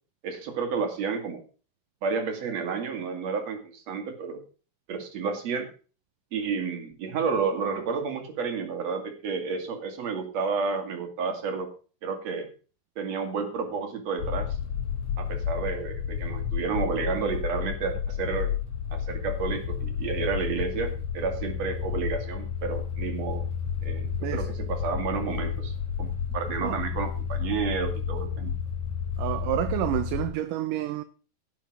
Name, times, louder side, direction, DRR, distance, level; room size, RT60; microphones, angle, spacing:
voice 1, 0.2-1.4 2.0-4.4 4.9-5.7 6.3-11.7 12.0-12.5 13.0-14.6 15.2-18.5 18.9-23.4 23.8-28.5, right 5 dB, 50° right, 3.2 m, -31 dB
sound 1, 14.2-30.3, left 7 dB, 55° left, 5.1 m, -31 dB
voice 2, 29.2-31.0, right 14 dB, 75° right, 2.2 m, -29 dB
17.0 x 6.5 x 6.1 m
omnidirectional pair, 4.0 m